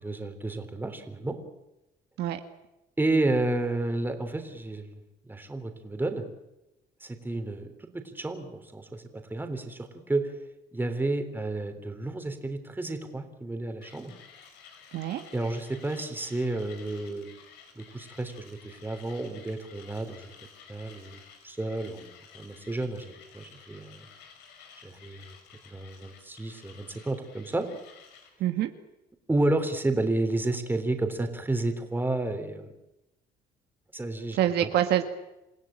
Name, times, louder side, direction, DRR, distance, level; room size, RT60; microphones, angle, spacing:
voice 1, 0.0-1.4 3.0-5.0 5.3-6.2 7.0-10.3 10.7-14.1 15.3-17.3 17.8-20.3 20.7-24.0 24.8-25.4 25.7-27.7 29.3-32.6 33.9-34.7, right 2 dB, 10° right, 6 dB, 3.7 m, -31 dB
Mechanisms, 13.8-28.3, left 7 dB, 85° left, 5.9 m, -53 dB
voice 2, 28.4-28.7 34.3-35.0, right 12 dB, 75° right, 7 dB, 1.7 m, -25 dB
28.0 x 16.0 x 8.9 m, 0.94 s
cardioid pair, 110°, 17 cm